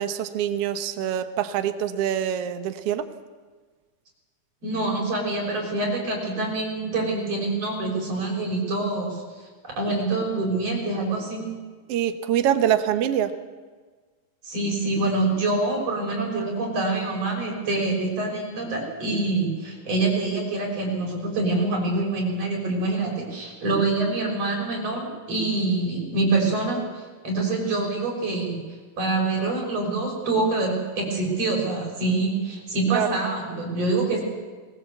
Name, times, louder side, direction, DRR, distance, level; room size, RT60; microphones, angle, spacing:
voice 1, 0.0-3.0 11.9-13.3 32.9-33.1, right 10 dB, 85° right, 9 dB, 1.3 m, -24 dB
voice 2, 4.6-9.2 9.6-11.5 14.4-28.6 29.0-34.2, right 2 dB, 40° right, -1 dB, 6.9 m, -25 dB
21.0 x 19.0 x 8.1 m, 1.5 s
omnidirectional pair, 4.3 m